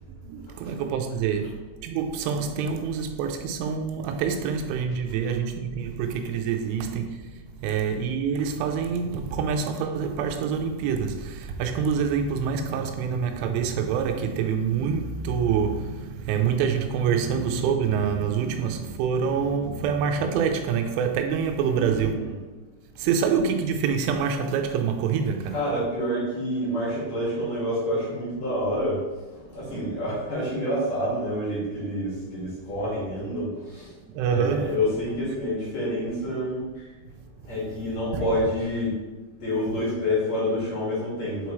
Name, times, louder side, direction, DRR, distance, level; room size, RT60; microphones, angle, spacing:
voice 1, 0.2-7.2 7.6-22.3 23.0-25.6 34.0-34.8 38.1-38.3, right 6 dB, 85° right, 3.1 m, -26 dB
voice 2, 21.6-22.3 25.5-29.0 29.3-33.9 34.2-36.8 37.4-39.0 39.4-41.5, left 1 dB, 50° left, 2.3 m, -28 dB
7.8 x 4.6 x 3.1 m
omnidirectional pair, 5.5 m